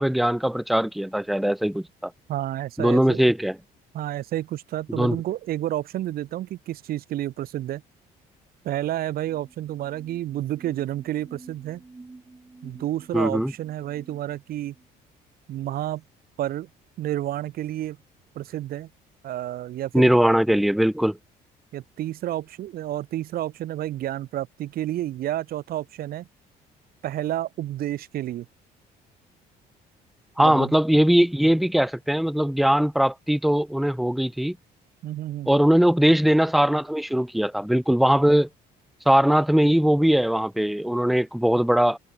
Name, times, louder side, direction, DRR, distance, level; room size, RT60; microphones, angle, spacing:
voice 1, 0.0-2.1 2.8-3.6 4.9-5.2 13.1-13.5 19.9-21.2 30.4-34.6 35.5-38.5 39.1-42.0, equal, ahead, 0.4 m, -20 dB
voice 2, 2.3-3.2 3.9-7.8 8.6-11.8 12.6-14.7 15.5-16.0 16.4-16.7 17.0-18.0 18.3-18.9 19.2-20.2 21.7-26.3 27.0-28.5 30.4-30.7 35.0-35.5, right 13 dB, 65° right, 1.0 m, -30 dB
sound 1, 9.1-14.9, right 3 dB, 15° right, 4.3 m, -49 dB
cardioid pair, 110°, 17 cm